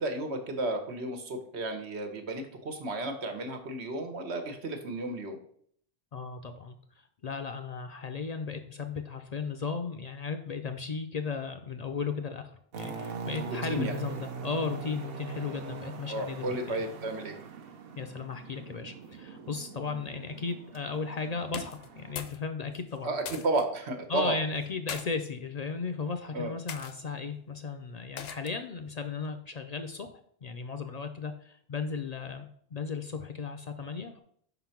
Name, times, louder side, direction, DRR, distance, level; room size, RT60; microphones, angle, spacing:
voice 1, 0.0-5.4 13.5-13.9 16.1-17.4 23.0-24.4 26.3-26.5, right 2 dB, 90° right, 5 dB, 1.3 m, -33 dB
voice 2, 6.1-6.8 7.2-16.8 18.0-23.1 24.1-30.1 30.4-34.2, left 5 dB, 55° left, 7 dB, 0.5 m, -35 dB
sound 1, 12.7-22.1, right 5 dB, 65° right, 0.9 m, -42 dB
sound 2, 21.4-22.4 22.7-23.7 24.6-25.1 25.8-26.1 26.7-26.9 28.2-28.6, left 7 dB, 75° left, 0.9 m, -41 dB
5.4 x 3.9 x 5.8 m, 0.63 s
omnidirectional pair, 1.1 m